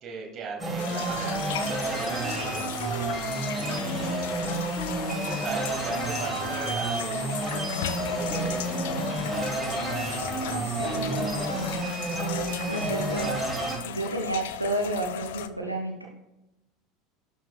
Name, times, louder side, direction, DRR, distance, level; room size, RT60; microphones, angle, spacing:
voice 1, 0.0-2.6 3.5-4.4 5.1-7.7 8.0-8.8 10.6-11.1, right 5 dB, 40° right, 2 dB, 1.5 m, -38 dB
sound 1, 0.6-13.8, right 2 dB, 15° right, 1.6 m, -30 dB
sound 2, 0.8-15.5, left 11 dB, 60° left, 0.4 m, -36 dB
voice 2, 10.4-11.7 12.7-13.4 13.8-16.0, right 1 dB, 90° right, 0 dB, 0.7 m, -31 dB
11.0 x 4.1 x 2.4 m, 0.92 s
figure-of-eight pair, 75°, 0 cm